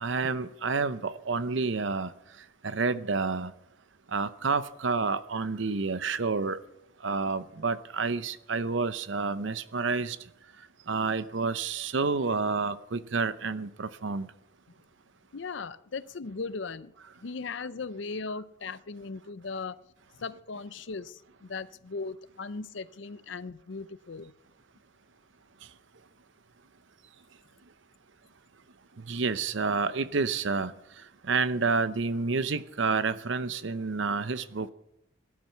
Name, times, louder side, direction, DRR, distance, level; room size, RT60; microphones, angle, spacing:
voice 1, 0.0-2.1 2.6-3.5 4.1-6.6 7.0-10.2 10.9-14.3 29.1-30.7 31.3-34.7, right 4 dB, 65° right, 0.7 m, -29 dB
voice 2, 15.3-19.8 20.2-24.3, left 4 dB, 65° left, 0.6 m, -38 dB
18.0 x 11.0 x 5.8 m
head